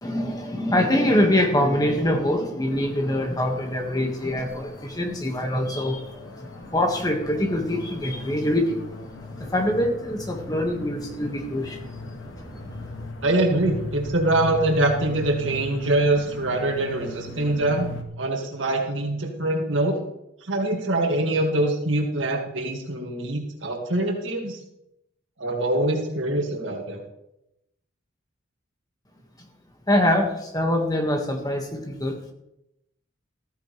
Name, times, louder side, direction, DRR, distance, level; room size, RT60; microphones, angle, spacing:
voice 1, 0.0-11.9 12.3-13.0 29.9-32.2, left 1 dB, 20° left, 3 dB, 1.7 m, -24 dB
sound 1, 2.7-18.0, left 1 dB, 90° left, 1.7 m, -39 dB
voice 2, 13.2-17.9 18.2-20.0 20.4-24.6 25.4-27.0, right 2 dB, 75° right, 1 dB, 2.1 m, -24 dB
14.5 x 14.0 x 3.3 m, 0.85 s
head